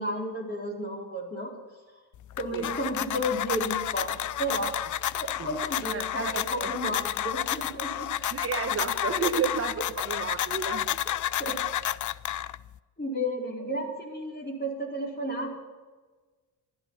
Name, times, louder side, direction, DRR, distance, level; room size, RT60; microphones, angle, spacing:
voice 1, 0.0-1.5 2.4-4.7 5.1-8.1 9.2-9.3 11.3-11.6 12.3-12.5 13.0-15.5, equal, 20° left, -1 dB, 4.6 m, -33 dB
sound 1, 2.1-12.8, left 12 dB, 40° left, 0.5 m, -31 dB
voice 2, 5.4-6.9 8.3-11.0, right 6 dB, 30° right, 5 dB, 1.3 m, -32 dB
13.0 x 11.5 x 5.7 m, 1.3 s
supercardioid pair, 75°, 47 cm